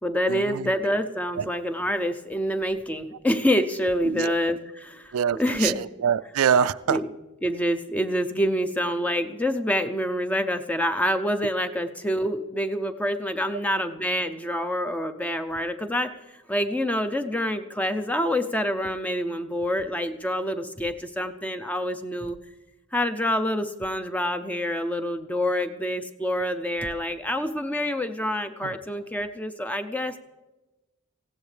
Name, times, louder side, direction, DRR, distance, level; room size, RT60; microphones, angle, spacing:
voice 1, 0.0-5.8 6.9-7.1 7.4-22.4 22.9-30.2, equal, 5° left, 9 dB, 0.5 m, -27 dB
voice 2, 5.1-7.0, right 8 dB, 80° right, 15 dB, 0.4 m, -24 dB
20.0 x 16.0 x 3.3 m, 1.1 s
head